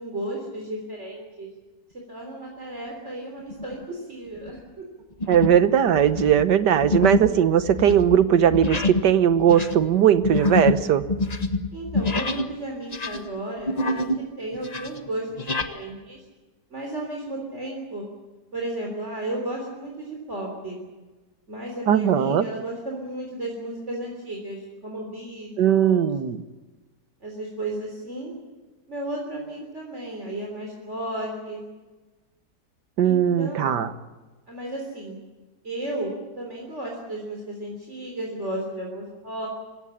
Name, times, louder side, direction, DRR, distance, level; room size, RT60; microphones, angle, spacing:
voice 1, 0.0-1.5 2.1-4.6 11.7-16.2 16.7-18.1 18.5-20.8 21.5-26.1 27.2-28.3 28.9-31.7 33.0-33.8 34.5-35.2 35.6-39.5, right 1 dB, 40° right, -1 dB, 4.0 m, -34 dB
sound 1, 3.5-3.8 4.4-4.6 5.2-5.7 5.9-12.5 12.8-14.2 14.5-15.7, left 2 dB, 25° left, 1.2 m, -27 dB
voice 2, 5.3-11.0 21.9-22.4 25.6-26.4 33.0-33.9, right 9 dB, 85° right, 12 dB, 1.7 m, -19 dB
26.0 x 16.5 x 9.9 m, 1.2 s
omnidirectional pair, 1.8 m